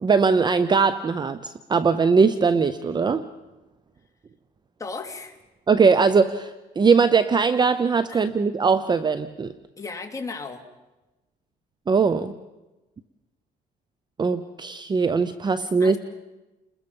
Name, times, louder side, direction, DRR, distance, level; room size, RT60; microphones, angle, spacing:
voice 1, 0.0-3.2 5.7-9.5 11.9-12.3 14.2-16.0, right 5 dB, 25° right, 13 dB, 0.7 m, -20 dB
voice 2, 4.8-5.4 8.1-8.3 9.8-10.6 15.8-16.0, left 4 dB, 20° left, 3 dB, 2.7 m, -35 dB
29.5 x 21.0 x 5.4 m, 1.1 s
cardioid pair, 110°, 17 cm